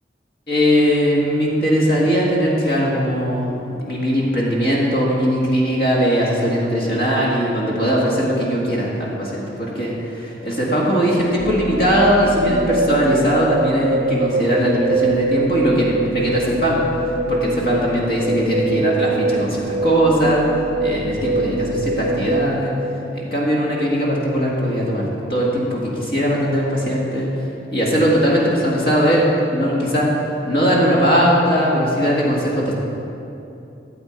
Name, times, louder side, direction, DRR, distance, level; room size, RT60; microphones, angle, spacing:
voice 1, 0.5-16.8 17.3-20.4 20.8-22.7 23.1-25.0 25.3-27.3 27.7-30.1 30.4-32.8, equal, 60° left, -4 dB, 1.9 m, -19 dB
sound 1, 11.4-23.5, right 2 dB, 55° right, 0.5 m, -23 dB
13.5 x 8.0 x 4.5 m, 2.8 s
head